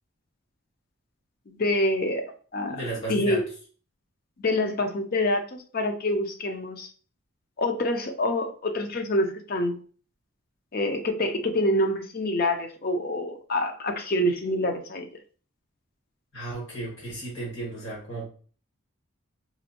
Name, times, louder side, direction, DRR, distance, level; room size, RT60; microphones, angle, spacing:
voice 1, 1.5-2.3 2.5-2.8 3.1-3.5 4.4-6.9 7.6-9.8 10.7-15.1, left 1 dB, 45° left, 6 dB, 0.5 m, -26 dB
voice 2, 2.7-3.4 16.3-18.3, right 2 dB, 65° left, -5 dB, 1.8 m, -34 dB
4.0 x 2.6 x 2.8 m, 0.41 s
head